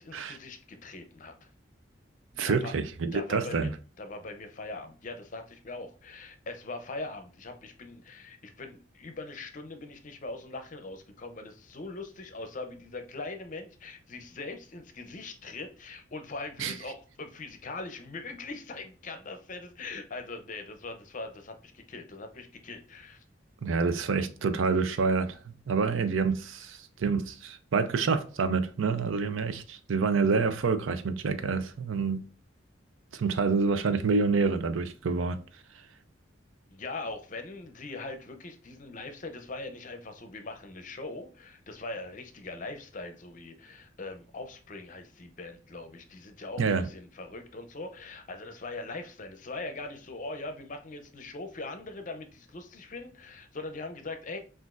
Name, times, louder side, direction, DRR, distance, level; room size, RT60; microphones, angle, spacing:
voice 1, 0.0-1.5 2.4-2.7 3.1-3.7 4.0-23.2 36.7-54.4, left 3 dB, 45° left, 0.6 m, -41 dB
voice 2, 2.4-3.7 16.6-16.7 23.6-32.2 33.1-35.4 46.6-46.9, right 4 dB, 85° right, 0.5 m, -27 dB
6.0 x 2.5 x 2.4 m
head